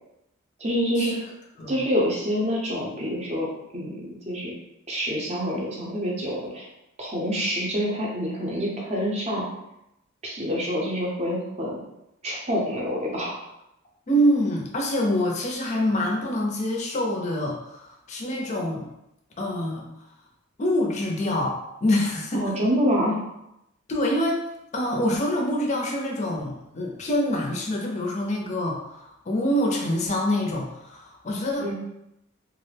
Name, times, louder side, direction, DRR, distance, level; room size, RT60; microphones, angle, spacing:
voice 1, 0.6-1.1 1.7-3.5 3.7-4.5 4.9-6.7 7.0-9.5 10.2-11.8 12.2-13.4 22.3-23.2 31.6-31.7, equal, 30° right, -3 dB, 0.6 m, -26 dB
voice 2, 14.1-18.9 19.4-19.9 20.6-22.5 23.9-24.4 24.7-31.7, equal, 35° left, 0 dB, 0.4 m, -25 dB
2.3 x 2.1 x 3.2 m, 0.84 s
head